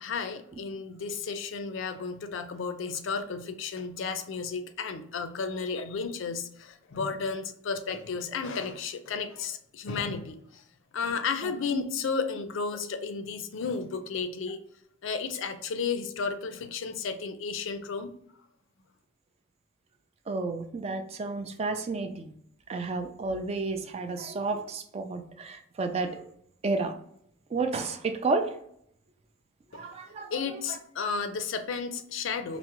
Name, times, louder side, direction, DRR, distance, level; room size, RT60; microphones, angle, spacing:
voice 1, 0.0-10.6 10.9-14.6 15.0-18.1 29.7-29.9 30.3-32.6, left 5 dB, 65° left, 9 dB, 0.4 m, -33 dB
voice 2, 20.3-22.3 22.7-26.2 26.6-26.9 27.5-28.5 29.7-30.6, right 3 dB, 30° right, 7 dB, 0.3 m, -31 dB
4.5 x 2.0 x 2.9 m, 0.70 s
head